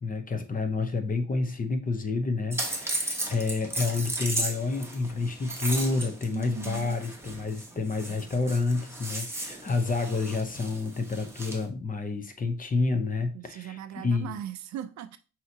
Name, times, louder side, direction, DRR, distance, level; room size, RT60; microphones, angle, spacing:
voice 1, 0.0-13.8 14.0-14.4, left 3 dB, 30° left, 0.7 m, -29 dB
sound 1, 2.5-11.7, right 1 dB, 10° right, 1.0 m, -35 dB
voice 2, 6.3-7.0 13.3-15.2, right 10 dB, 65° right, 0.5 m, -38 dB
5.5 x 2.8 x 2.7 m
cardioid pair, 90°, 30 cm